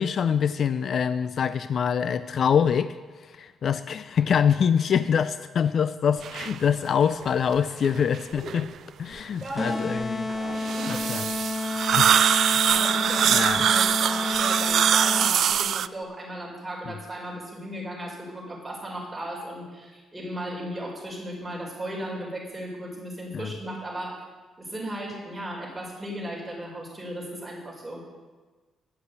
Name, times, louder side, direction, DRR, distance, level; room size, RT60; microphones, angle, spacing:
voice 1, 0.0-8.6 9.0-10.3 10.9-11.3 11.8-12.7 13.3-13.7 23.3-23.5, left 7 dB, 55° left, 13 dB, 0.4 m, -25 dB
sound 1, 6.2-6.6 7.2-7.3 7.8-8.6 10.3-15.9, right 9 dB, 65° right, 0.3 m, -23 dB
voice 2, 9.4-10.1 10.8-11.1 12.6-24.3 24.6-28.0, right 1 dB, 10° right, -4 dB, 4.9 m, -36 dB
sound 2, 9.6-15.5, left 2 dB, 25° left, 0.8 m, -30 dB
9.9 x 8.0 x 8.2 m, 1.4 s
cardioid pair, 90°, 0 cm